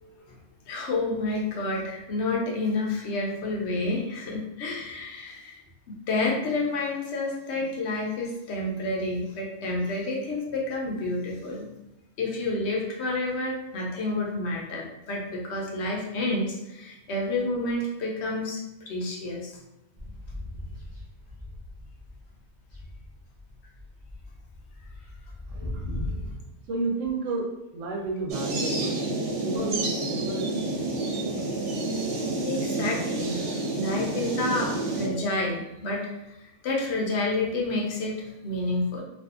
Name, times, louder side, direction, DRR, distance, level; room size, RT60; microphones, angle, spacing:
voice 1, 0.0-0.3 0.7-5.6 6.1-11.7 12.2-18.6 18.9-19.6 25.6-26.2 32.5-33.4 33.8-39.0, left 2 dB, 65° left, -1 dB, 0.8 m, -29 dB
sound 1, 20.0-22.3 22.6-26.3, left 1 dB, 25° left, 0.6 m, -38 dB
voice 2, 26.7-27.5 27.7-29.0 29.4-30.6, right 3 dB, 80° right, 0 dB, 0.9 m, -31 dB
sound 2, 28.3-35.1, right 2 dB, 60° right, 0.9 m, -29 dB
2.6 x 2.4 x 2.4 m, 0.88 s
omnidirectional pair, 1.3 m